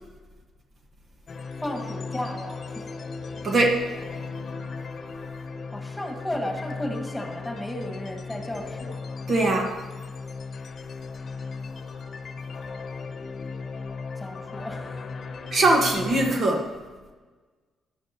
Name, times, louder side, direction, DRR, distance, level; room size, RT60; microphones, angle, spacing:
sound 1, 1.3-16.3, left 4 dB, 45° left, 1.0 m, -36 dB
voice 1, 1.6-2.9 5.7-9.0 14.2-15.0, left 1 dB, 5° left, 1 dB, 2.1 m, -34 dB
voice 2, 3.4-3.8 9.3-9.8 15.5-16.7, right 2 dB, 50° right, 1 dB, 1.5 m, -21 dB
13.5 x 10.5 x 3.0 m, 1.4 s
cardioid pair, 90°, 0 cm